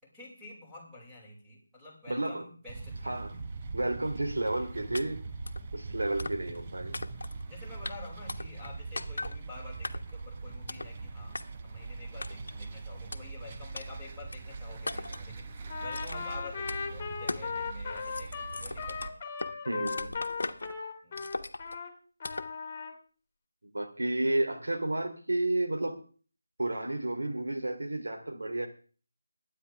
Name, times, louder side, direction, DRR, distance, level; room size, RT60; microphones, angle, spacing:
voice 1, 0.0-3.2 6.4-6.8 7.5-19.2 21.0-21.2, left 2 dB, 5° right, -6 dB, 5.8 m, -49 dB
voice 2, 2.1-2.5 3.0-3.4 3.7-5.2 5.7-7.0 19.6-20.2 23.7-26.0 26.6-28.7, right 2 dB, 75° right, 4 dB, 3.2 m, -31 dB
sound 1, 2.7-19.1, right 3 dB, 30° right, 1.1 m, -42 dB
sound 2, 4.9-5.0 5.5-5.6 6.2-6.6 6.9-7.4 7.8-7.9 8.3-8.7 9.0-9.4 9.8-10.2 10.7-10.9 11.3-11.4 12.2-12.6 13.1-13.2 13.8-13.9 14.3-14.4 14.9-15.3 15.9-16.3 16.7-16.8 17.3-17.5 17.8-19.5 19.9-20.7 21.2-21.8 22.2-22.5, left 2 dB, 65° left, 1.2 m, -38 dB
Trumpet, 15.7-21.9 22.2-23.0, left 5 dB, 30° left, 2.5 m, -37 dB
22.0 x 9.4 x 3.5 m, 0.40 s
figure-of-eight pair, 160°, 0 cm